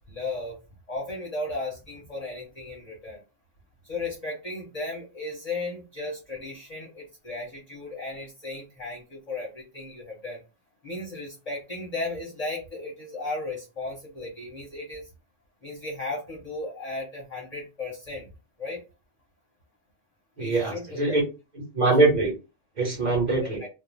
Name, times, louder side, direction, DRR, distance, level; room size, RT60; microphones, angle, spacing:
voice 1, 0.1-0.6 0.9-3.2 3.8-10.4 10.8-15.1 15.6-18.3 18.6-18.8 20.4-21.0 23.4-23.7, left 2 dB, 35° left, -2 dB, 0.7 m, -35 dB
voice 2, 20.4-21.2 21.5-22.4 22.8-23.6, right 3 dB, 40° right, -1 dB, 1.1 m, -23 dB
2.5 x 2.0 x 3.1 m, 0.28 s
omnidirectional pair, 1.3 m